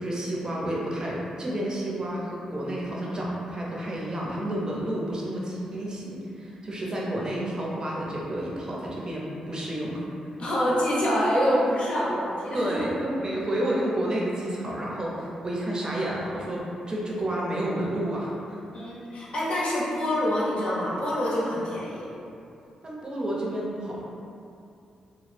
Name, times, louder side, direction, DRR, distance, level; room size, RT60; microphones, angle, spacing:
voice 1, 0.0-10.0 12.5-18.9 22.8-24.0, right 1 dB, 35° right, -4 dB, 0.6 m, -30 dB
voice 2, 10.4-12.7 18.7-22.1, equal, 55° left, -6 dB, 0.7 m, -26 dB
2.1 x 2.0 x 3.2 m, 2.6 s
supercardioid pair, 55°, 2 cm